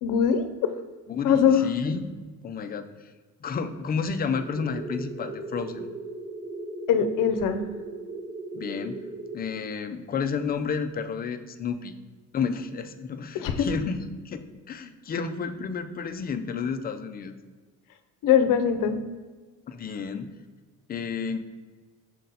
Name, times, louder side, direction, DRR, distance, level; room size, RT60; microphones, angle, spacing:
voice 1, 0.0-0.7 1.2-1.7 6.9-7.6 13.3-13.8 18.2-19.0, left 7 dB, 65° left, 9 dB, 0.7 m, -22 dB
voice 2, 1.1-2.0 2.4-2.8 3.4-5.9 8.5-9.0 9.3-11.9 12.3-17.3 19.7-20.3 20.9-21.4, left 5 dB, 30° left, 8 dB, 0.5 m, -31 dB
sound 1, 4.3-9.4, right 2 dB, 25° right, 0.6 m, -37 dB
6.6 x 3.9 x 4.1 m, 1.4 s
cardioid pair, 140°, 34 cm